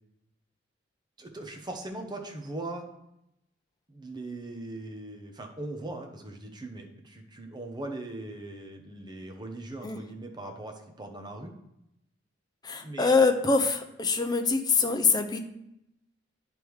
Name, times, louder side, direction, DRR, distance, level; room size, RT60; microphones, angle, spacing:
voice 1, 1.2-2.9 3.9-11.5 12.8-13.1, right 2 dB, 25° right, 3 dB, 0.9 m, -40 dB
voice 2, 12.6-15.4, left 4 dB, 20° left, 6 dB, 0.6 m, -24 dB
9.6 x 3.5 x 4.7 m, 0.84 s
head